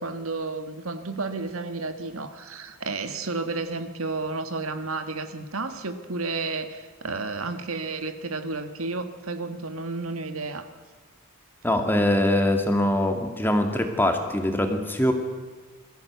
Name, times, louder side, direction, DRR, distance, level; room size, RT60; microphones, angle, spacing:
voice 1, 0.0-10.7, right 3 dB, 90° right, 9 dB, 1.6 m, -32 dB
voice 2, 11.6-15.1, left 1 dB, 10° left, 5 dB, 1.9 m, -23 dB
22.0 x 14.5 x 8.1 m, 1.4 s
head